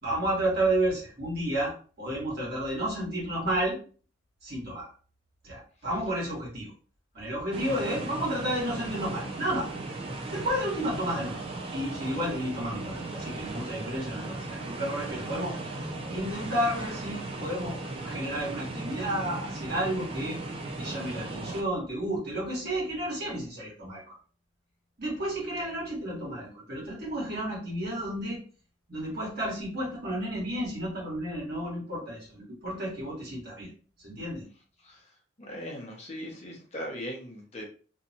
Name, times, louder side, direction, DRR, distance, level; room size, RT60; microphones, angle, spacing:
voice 1, 0.0-3.8 4.4-4.9 5.4-6.7 7.1-9.7 10.3-11.4 11.7-15.5 16.1-20.4 20.8-24.1 25.0-28.4 28.9-33.7 34.0-34.4, right 1 dB, 55° right, -5 dB, 1.3 m, -31 dB
sound 1, 7.5-21.6, right 2 dB, 30° right, 0.4 m, -37 dB
voice 2, 35.4-37.7, equal, 35° left, -1 dB, 0.6 m, -39 dB
2.6 x 2.2 x 2.6 m, 0.40 s
head